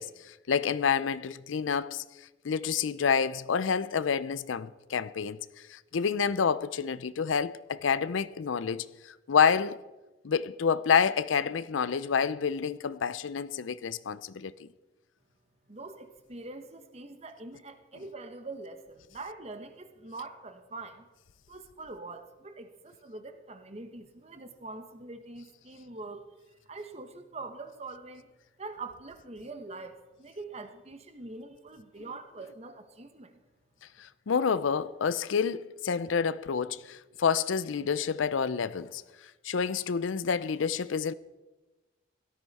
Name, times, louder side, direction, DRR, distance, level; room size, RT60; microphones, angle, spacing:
voice 1, 0.0-2.0 2.4-5.4 5.7-9.8 10.2-14.7 34.0-39.0 39.4-41.1, left 6 dB, 85° left, 0.5 m, -28 dB
voice 2, 15.7-21.1 21.5-28.3 28.6-33.4, right 3 dB, 35° right, 1.1 m, -44 dB
17.0 x 13.0 x 4.2 m
head